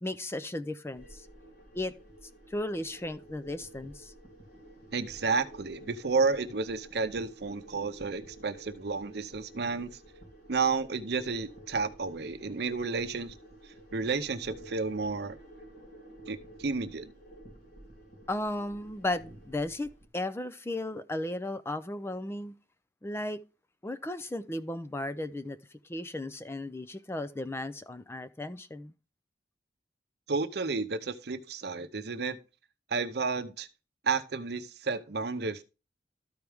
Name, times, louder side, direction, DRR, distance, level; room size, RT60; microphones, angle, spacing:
voice 1, 0.0-1.3 1.7-1.9 2.5-4.1 18.3-19.9 20.1-22.5 23.0-23.4 23.8-25.6 25.9-28.9, left 1 dB, 15° left, 0.4 m, -35 dB
sound 1, 0.9-20.1, right 1 dB, 55° left, 3.0 m, -51 dB
voice 2, 4.9-9.9 10.5-13.3 13.9-15.4 16.3-17.1 30.3-32.4 32.9-33.7 34.0-35.6, right 4 dB, 65° right, 0.7 m, -31 dB
13.0 x 4.6 x 3.5 m
head